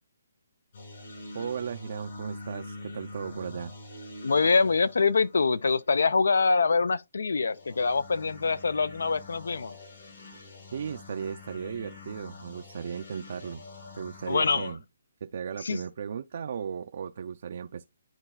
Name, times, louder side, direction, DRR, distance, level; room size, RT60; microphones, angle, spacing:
sound 1, 0.7-5.9 7.4-14.7, left 2 dB, 60° left, 3.7 m, -45 dB
voice 1, 1.3-3.7 10.7-13.6 13.9-14.8 15.2-17.9, right 7 dB, 55° right, 0.4 m, -36 dB
voice 2, 4.2-9.8 14.3-14.7 15.6-15.8, left 4 dB, 80° left, 0.5 m, -24 dB
11.0 x 4.0 x 2.2 m
hypercardioid pair, 160°, 0 cm